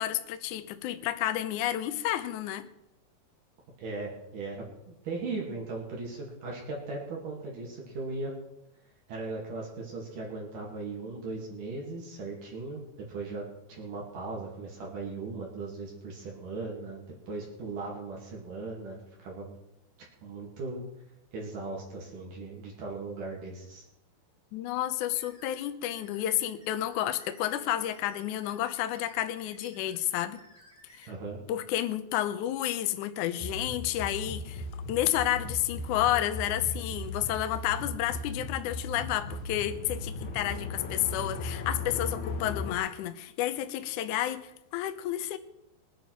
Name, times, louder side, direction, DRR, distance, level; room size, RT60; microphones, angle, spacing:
voice 1, 0.0-2.7 24.5-30.4 31.0-31.1 31.5-34.6 34.9-45.4, left 12 dB, 80° left, 10 dB, 1.8 m, -31 dB
voice 2, 3.8-8.3 9.1-19.5 20.2-20.8 21.3-23.8 31.0-31.4, right 3 dB, 60° right, -2 dB, 3.7 m, -38 dB
sound 1, 25.1-31.1, equal, 5° right, 3.8 m, -57 dB
sound 2, 33.4-42.8, left 2 dB, 55° left, 2.8 m, -37 dB
22.0 x 9.0 x 4.6 m, 0.88 s
omnidirectional pair, 4.5 m